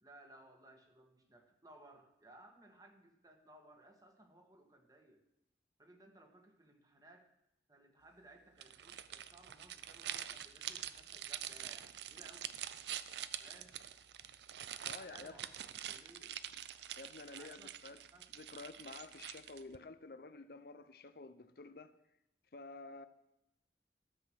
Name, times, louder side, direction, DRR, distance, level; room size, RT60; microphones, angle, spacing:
voice 1, 0.0-5.2 5.8-7.3 7.7-12.6 13.4-13.8 14.7-15.5 15.9-16.3 17.3-17.7 18.1-18.3, right 2 dB, 20° right, 4 dB, 1.5 m, -61 dB
sound 1, 8.6-19.8, right 10 dB, 75° right, 0.5 m, -46 dB
voice 2, 14.9-15.4 17.0-18.0 18.3-21.9 22.5-23.1, left 3 dB, 55° left, 12 dB, 0.6 m, -51 dB
13.0 x 7.8 x 6.2 m, 0.86 s
head